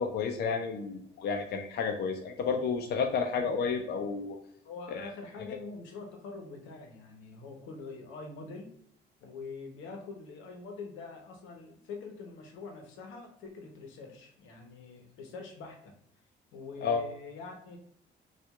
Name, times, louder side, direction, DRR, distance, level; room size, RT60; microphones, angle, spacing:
voice 1, 0.0-4.4 4.9-5.1 16.8-17.0, left 5 dB, 55° left, 4 dB, 0.5 m, -31 dB
voice 2, 4.6-8.7 9.2-15.9 16.5-17.8, left 4 dB, 90° left, 3 dB, 0.8 m, -44 dB
4.4 x 2.4 x 2.3 m, 0.71 s
cardioid pair, 85°, 19 cm